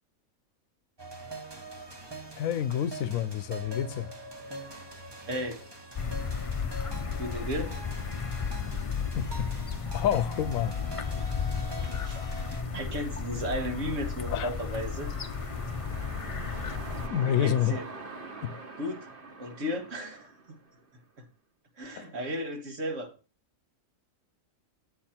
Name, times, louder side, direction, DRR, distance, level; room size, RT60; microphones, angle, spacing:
sound 1, 1.0-12.6, right 1 dB, 20° right, 1.1 m, -43 dB
voice 1, 2.4-4.1 9.1-9.3 9.9-10.7 14.3-14.5 17.1-17.8 18.4-18.6 22.0-22.1, left 10 dB, 80° left, 1.0 m, -28 dB
voice 2, 5.3-5.6 7.2-7.7 11.8-12.2 12.7-15.1 16.5-16.6 17.2-17.8 18.8-19.1 19.4-20.6 21.8-23.1, equal, 65° right, 1.9 m, -34 dB
sound 2, 6.0-17.1, left 6 dB, 35° left, 0.5 m, -34 dB
sound 3, 10.8-21.0, right 3 dB, 40° right, 1.6 m, -45 dB
10.0 x 7.7 x 4.3 m
omnidirectional pair, 1.4 m